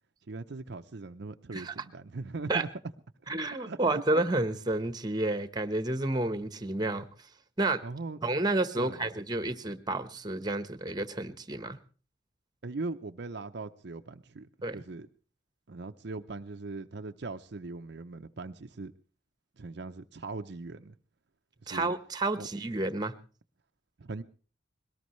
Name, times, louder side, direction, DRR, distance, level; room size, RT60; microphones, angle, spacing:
voice 1, 0.3-2.7 3.7-4.0 7.8-8.2 8.8-9.1 12.6-14.5 14.7-15.1 15.7-18.9 19.6-20.9 21.6-21.9 22.4-22.5 24.0-24.2, right 3 dB, 60° right, 7 dB, 0.7 m, -40 dB
voice 2, 3.3-7.0 7.6-7.8 8.2-11.8 14.6-14.8 21.7-23.1, right 2 dB, 20° right, 11 dB, 1.1 m, -30 dB
22.0 x 19.0 x 3.2 m, 0.39 s
head